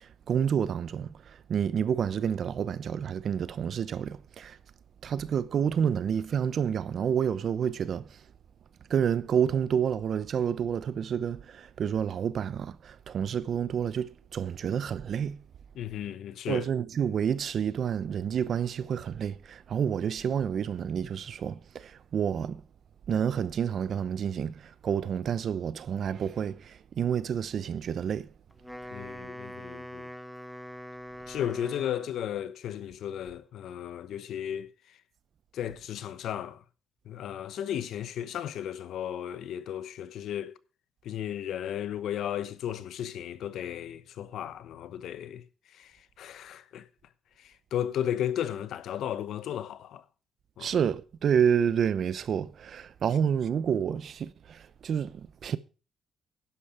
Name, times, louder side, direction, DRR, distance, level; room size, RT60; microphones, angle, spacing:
voice 1, 0.0-4.6 5.0-8.2 8.9-15.4 16.5-22.6 23.1-28.3 50.6-55.6, right 8 dB, 60° right, 0.8 m, -29 dB
voice 2, 15.7-16.6 28.9-30.1 31.3-34.7 35.5-36.6 37.1-40.5 41.0-45.4 45.7-46.9 47.4-50.0 50.6-50.7, left 10 dB, 75° left, 1.0 m, -34 dB
Wind instrument woodwind instrument, 28.5-32.4, equal, ahead, 1.0 m, -43 dB
11.5 x 10.0 x 4.9 m
cardioid pair, 90°, 0 cm